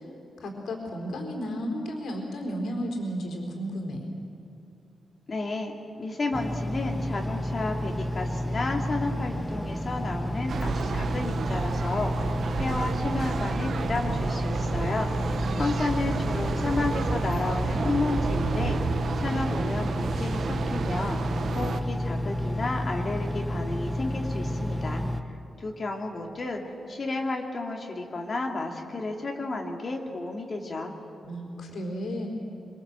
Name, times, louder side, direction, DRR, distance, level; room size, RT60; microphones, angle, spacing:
voice 1, 0.4-4.1 15.4-15.5 31.2-32.3, equal, 85° left, 1 dB, 4.2 m, -33 dB
voice 2, 5.3-12.1 12.6-15.1 15.6-18.8 19.2-21.2 21.5-25.0 25.6-26.6 26.9-30.9, left 3 dB, 35° left, 1 dB, 2.7 m, -32 dB
Engine, 6.3-25.2, left 1 dB, 5° right, 0.9 m, -30 dB
sound 1, 10.5-21.8, right 6 dB, 60° right, 0.9 m, -32 dB
26.0 x 24.5 x 7.7 m, 2.7 s
wide cardioid pair, 160°, 0 cm